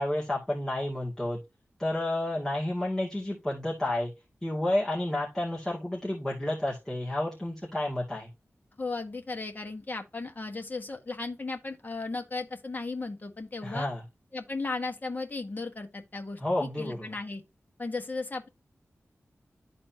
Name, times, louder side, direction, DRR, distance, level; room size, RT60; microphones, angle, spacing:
voice 1, 0.0-1.4 1.8-4.1 4.4-8.3 13.6-14.0 16.4-17.1, left 1 dB, 10° left, 2.4 m, -30 dB
voice 2, 8.8-13.9 14.3-17.4 17.8-18.5, left 3 dB, 35° left, 1.5 m, -36 dB
12.5 x 4.2 x 2.9 m
wide cardioid pair, 95°, 5 cm